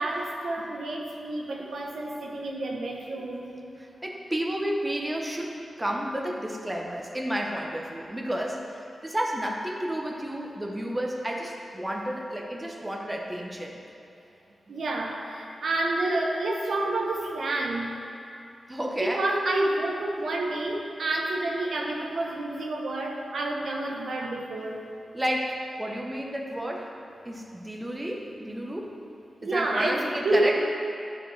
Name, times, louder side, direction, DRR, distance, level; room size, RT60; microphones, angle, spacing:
voice 1, 0.0-3.6 14.7-17.9 19.0-24.8 29.4-30.6, right 2 dB, 75° right, -1 dB, 1.0 m, -29 dB
voice 2, 3.8-13.8 18.7-19.2 25.1-26.9 27.2-29.0 29.4-30.6, equal, 15° right, 0 dB, 0.9 m, -31 dB
11.5 x 5.0 x 3.3 m, 2.7 s
cardioid pair, 65°, 0 cm